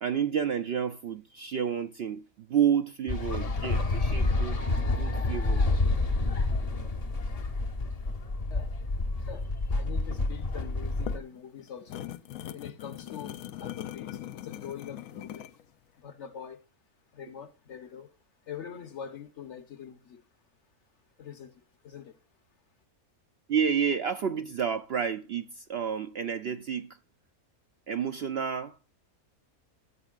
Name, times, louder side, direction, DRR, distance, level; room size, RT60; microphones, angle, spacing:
voice 1, 0.0-4.6 5.0-5.8 23.5-27.0 27.9-29.0, right 7 dB, 60° right, 0.7 m, -30 dB
sound 1, 3.1-11.2, left 2 dB, 35° left, 0.7 m, -28 dB
voice 2, 9.2-12.1 12.5-15.5 16.0-16.6 17.1-18.1 18.4-20.3 21.2-22.2, left 8 dB, 55° left, 1.2 m, -44 dB
sound 2, 10.8-15.6, left 12 dB, 75° left, 1.1 m, -40 dB
15.0 x 8.1 x 2.4 m
omnidirectional pair, 1.5 m